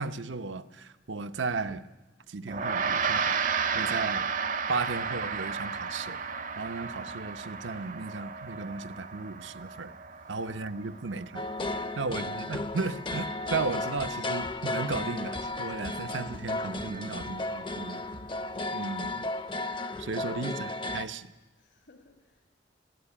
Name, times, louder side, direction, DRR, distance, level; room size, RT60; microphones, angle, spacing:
voice 1, 0.0-1.9 2.3-3.4 3.7-4.3 4.7-6.2 6.6-9.9 10.3-18.0 18.7-19.3 20.0-21.3, right 4 dB, 85° right, 10 dB, 0.8 m, -35 dB
Gong, 2.5-12.0, right 5 dB, 45° right, 0.7 m, -33 dB
voice 2, 10.1-10.5 10.8-11.0 11.7-12.1 21.6-22.5, left 2 dB, 75° left, 3 dB, 2.0 m, -61 dB
sound 1, 11.3-21.0, left 2 dB, 25° left, 0.6 m, -34 dB
20.5 x 15.0 x 10.0 m, 1.2 s
head